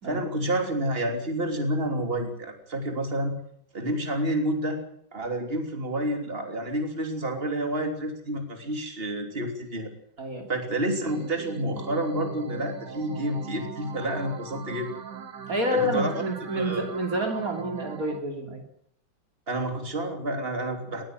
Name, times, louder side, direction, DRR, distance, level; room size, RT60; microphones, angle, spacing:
voice 1, 0.0-3.3 3.7-4.8 5.1-9.9 10.5-15.0 15.7-16.2 16.5-16.9 19.5-21.0, right 1 dB, 30° right, 4 dB, 3.4 m, -29 dB
voice 2, 10.2-10.5 15.5-18.6, equal, 55° right, 3 dB, 3.4 m, -28 dB
sound 1, 11.1-18.2, right 7 dB, 75° right, 2.1 m, -40 dB
20.0 x 16.0 x 9.3 m, 0.69 s
omnidirectional pair, 1.9 m